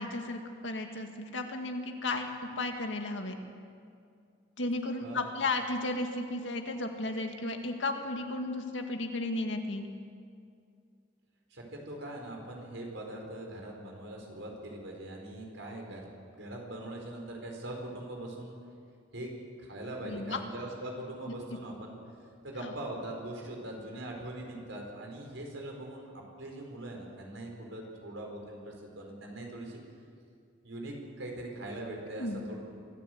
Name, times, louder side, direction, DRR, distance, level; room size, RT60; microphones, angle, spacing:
voice 1, 0.0-2.3 2.6-3.4 4.6-9.9 20.0-20.4 21.5-21.6 22.6-22.7 32.1-32.4, left 2 dB, 80° left, 4 dB, 2.0 m, -34 dB
voice 2, 11.5-16.0 16.3-18.6 19.1-19.3 19.6-22.0 22.4-29.8 30.6-32.6, right 1 dB, 90° right, 0 dB, 4.8 m, -41 dB
24.5 x 14.0 x 7.9 m, 2.3 s
head